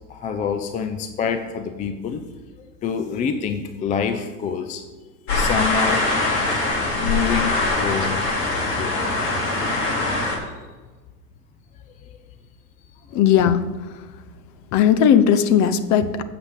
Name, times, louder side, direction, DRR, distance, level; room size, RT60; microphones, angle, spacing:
voice 1, 0.1-2.3 2.6-6.2 7.0-8.3 8.8-8.9 10.1-10.4 12.0-12.2 13.0-13.2, left 7 dB, 15° left, 8 dB, 0.4 m, -27 dB
sound 1, 5.3-10.4, left 2 dB, 65° left, 3.1 m, -22 dB
voice 2, 13.1-13.7 14.7-16.2, left 8 dB, 35° left, 12 dB, 0.8 m, -17 dB
7.8 x 5.9 x 7.0 m, 1.3 s
hypercardioid pair, 100°, 48 cm